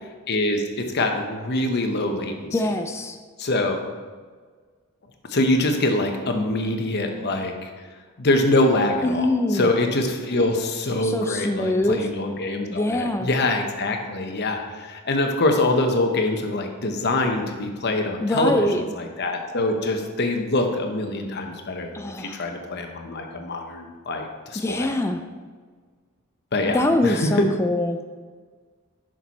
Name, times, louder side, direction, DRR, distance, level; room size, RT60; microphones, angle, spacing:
voice 1, 0.3-2.5 3.4-3.8 5.3-7.7 8.2-9.3 9.5-18.7 19.0-24.9 26.5-27.2, left 2 dB, 50° left, 4 dB, 0.9 m, -24 dB
voice 2, 2.5-3.2 9.0-9.7 11.0-12.1 12.7-13.3 18.2-18.8 21.9-22.5 24.5-25.2 26.7-28.0, left 1 dB, 10° left, 6 dB, 0.3 m, -23 dB
6.7 x 6.2 x 4.2 m, 1.5 s
head